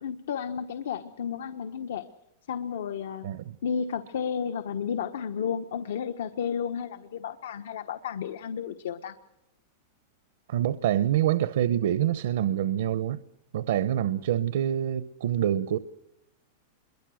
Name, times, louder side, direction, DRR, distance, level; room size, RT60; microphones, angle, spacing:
voice 1, 0.0-2.1 2.5-3.3 3.6-9.1, left 7 dB, 85° left, 1.1 m, -32 dB
voice 2, 3.2-3.6 10.5-13.2 13.5-15.8, right 11 dB, 75° right, 0.8 m, -26 dB
26.5 x 22.5 x 6.4 m
supercardioid pair, 165°, 0 cm